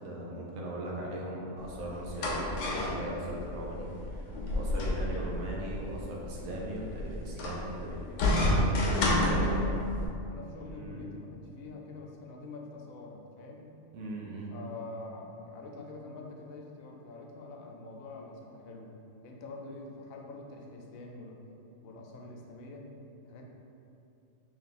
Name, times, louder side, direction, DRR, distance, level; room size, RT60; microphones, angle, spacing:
voice 1, 0.0-8.0 8.3-9.4 10.7-11.1 13.9-14.6, right 1 dB, 90° right, -3 dB, 1.2 m, -39 dB
sound 1, 1.6-10.1, left 1 dB, 70° left, 0.9 m, -30 dB
voice 2, 8.9-9.8 10.3-13.8 14.5-18.9 19.2-21.4 21.8-22.9 23.3-23.5, left 3 dB, 90° left, 1 dB, 1.0 m, -45 dB
3.1 x 3.0 x 4.1 m, 2.7 s
omnidirectional pair, 1.4 m